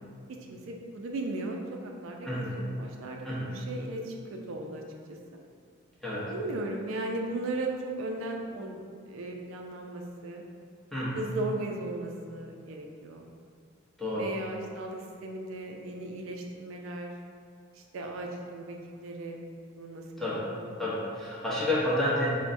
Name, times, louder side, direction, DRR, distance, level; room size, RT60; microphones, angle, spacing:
voice 1, 0.5-1.6 1.8-4.8 5.1-5.2 6.3-8.7 9.0-10.4 11.1-13.3 14.1-17.1 17.8-19.4 19.8-20.8, right 2 dB, 80° right, 1 dB, 0.3 m, -37 dB
voice 2, 20.8-22.3, left 1 dB, ahead, -9 dB, 0.7 m, -30 dB
4.6 x 2.1 x 2.5 m, 2.3 s
head